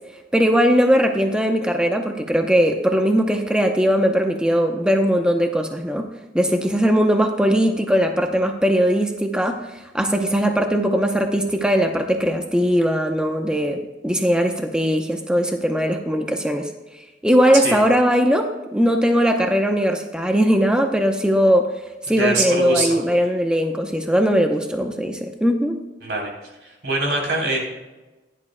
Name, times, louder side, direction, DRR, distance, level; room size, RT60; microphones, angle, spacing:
voice 1, 0.3-6.1 6.3-9.6 9.9-16.7 17.2-21.7 22.1-25.8, equal, 5° right, 4 dB, 0.7 m, -19 dB
voice 2, 22.2-23.0 26.0-26.3 26.6-27.6, right 2 dB, 75° right, -1 dB, 3.6 m, -23 dB
15.5 x 11.0 x 2.2 m, 1.1 s
head